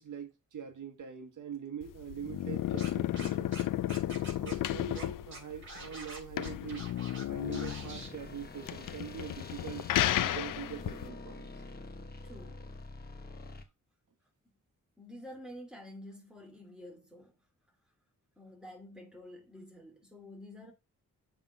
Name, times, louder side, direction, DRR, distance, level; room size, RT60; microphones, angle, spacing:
voice 1, 0.0-3.6 4.4-6.9 7.3-9.9 10.2-11.5, right 8 dB, 70° right, 1.2 m, -43 dB
sound 1, 1.8-11.1, left 13 dB, 85° left, 0.5 m, -33 dB
Scratching (performance technique), 2.8-3.6 3.9-4.7 4.9-5.0 5.3-7.2 7.5-8.1, right 2 dB, 40° right, 5.3 m, -46 dB
sound 2, 7.3-13.7, left 2 dB, 30° left, 1.0 m, -47 dB
voice 2, 12.2-12.6 15.0-17.3 18.4-20.7, left 1 dB, ahead, 2.6 m, -49 dB
7.2 x 3.9 x 5.3 m
wide cardioid pair, 135°, 32 cm